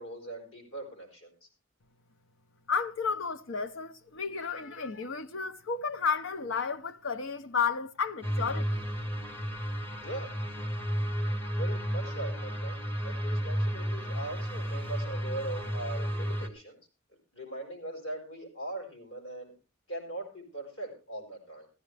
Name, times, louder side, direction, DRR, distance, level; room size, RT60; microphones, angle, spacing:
voice 1, 0.0-1.5 10.0-10.3 11.5-12.8 13.0-16.8 17.3-19.5 19.9-21.7, right 2 dB, 85° left, 5.0 m, -40 dB
voice 2, 2.7-8.9, left 5 dB, 65° left, 0.8 m, -32 dB
sound 1, 8.2-16.5, equal, 10° left, 1.3 m, -32 dB
15.0 x 14.0 x 3.3 m
head